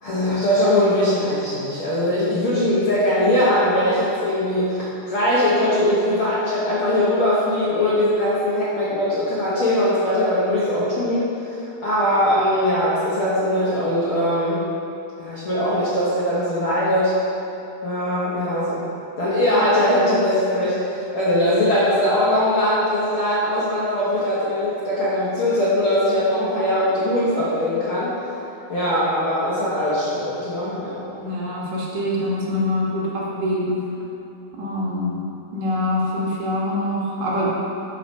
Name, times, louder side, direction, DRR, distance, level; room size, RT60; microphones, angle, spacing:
voice 1, 0.0-14.6 15.2-17.1 17.8-18.8 19.2-28.1 28.7-31.0, left 1 dB, 60° left, -10 dB, 1.4 m, -21 dB
voice 2, 31.2-33.8 34.6-35.2 35.5-37.5, left 1 dB, 60° right, -5 dB, 2.3 m, -24 dB
8.0 x 5.8 x 5.5 m, 2.7 s
omnidirectional pair, 4.3 m